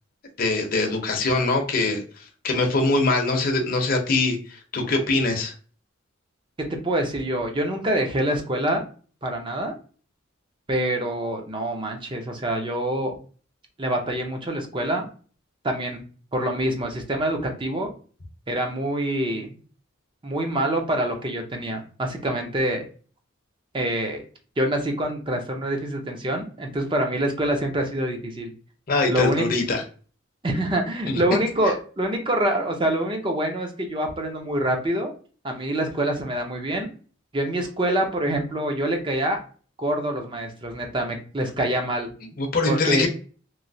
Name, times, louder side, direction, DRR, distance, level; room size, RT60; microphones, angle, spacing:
voice 1, 0.4-2.0 2.4-5.5 28.9-29.8 31.1-31.2 42.4-43.1, left 2 dB, 45° left, 2 dB, 0.7 m, -23 dB
voice 2, 6.6-8.8 9.2-9.7 10.7-13.2 13.8-15.1 15.6-16.0 16.3-17.9 18.5-19.6 20.2-22.9 23.7-24.2 24.6-28.5 29.1-29.5 30.4-35.1 35.4-36.9 37.3-39.4 39.8-42.1 42.6-43.0, right 1 dB, 25° right, 3 dB, 0.6 m, -26 dB
3.1 x 2.7 x 2.6 m, 0.39 s
head